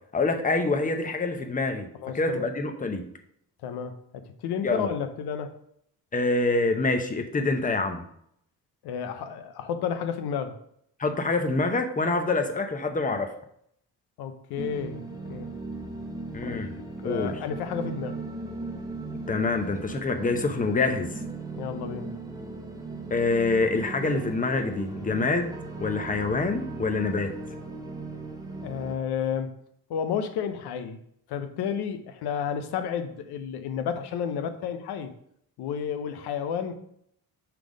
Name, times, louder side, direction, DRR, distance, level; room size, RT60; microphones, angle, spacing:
voice 1, 0.1-1.9 2.1-3.1 4.6-4.9 6.1-8.0 11.0-13.3 16.3-16.7 17.0-17.4 19.3-21.2 23.1-25.5 25.8-27.3, left 3 dB, 20° left, 6 dB, 0.8 m, -26 dB
voice 2, 1.9-2.5 3.6-5.5 8.8-10.6 14.2-15.0 15.3-15.5 16.4-18.2 21.6-22.2 28.6-29.6 29.9-31.0 31.3-35.1 35.6-36.8, left 7 dB, 85° left, 8 dB, 0.8 m, -31 dB
sound 1, 14.6-29.0, right 3 dB, 10° right, 0.9 m, -37 dB
5.9 x 3.5 x 5.0 m, 0.70 s
cardioid pair, 105°, 38 cm